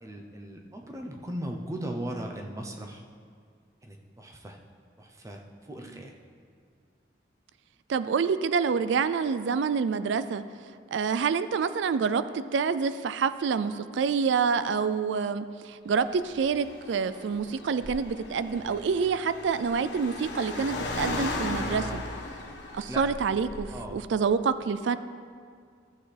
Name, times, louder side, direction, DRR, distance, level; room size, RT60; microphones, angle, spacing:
voice 1, 0.0-3.0 3.8-4.6 5.0-6.1 22.9-23.0 23.7-24.0, right 1 dB, 15° right, 3 dB, 0.7 m, -38 dB
voice 2, 7.9-10.4 10.9-22.0 22.7-25.0, right 5 dB, 75° right, 13 dB, 0.3 m, -27 dB
Car, 16.0-23.9, left 2 dB, 70° left, 1.1 m, -36 dB
13.5 x 7.8 x 3.3 m, 2.2 s
head